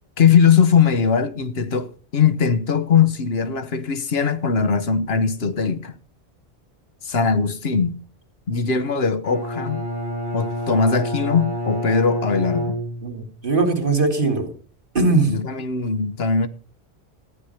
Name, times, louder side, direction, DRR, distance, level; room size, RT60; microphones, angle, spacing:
voice 1, 0.2-6.0 7.0-8.0 8.5-9.8 10.3-12.8 15.3-16.5, left 6 dB, 65° left, 1.2 m, -20 dB
Bowed string instrument, 9.2-13.4, equal, 45° left, 7.2 m, -28 dB
voice 2, 13.0-14.5 14.9-15.3, right 3 dB, 50° right, 3.1 m, -20 dB
14.5 x 10.5 x 5.7 m
omnidirectional pair, 1.1 m